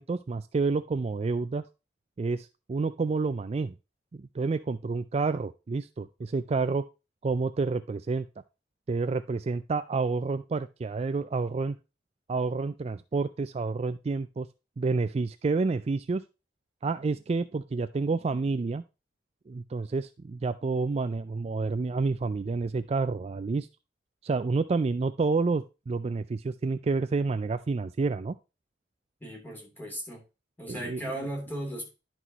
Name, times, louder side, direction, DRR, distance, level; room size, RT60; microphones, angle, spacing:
voice 1, 0.0-1.6 2.2-3.7 4.1-6.9 7.2-8.3 8.9-11.8 12.3-14.5 14.8-16.2 16.8-18.8 19.5-23.7 24.2-28.3 30.7-31.0, right 4 dB, 35° right, 12 dB, 0.3 m, -29 dB
voice 2, 29.2-30.2 30.6-31.9, right 1 dB, 10° left, -1 dB, 3.2 m, -36 dB
11.0 x 6.0 x 2.9 m, 0.28 s
head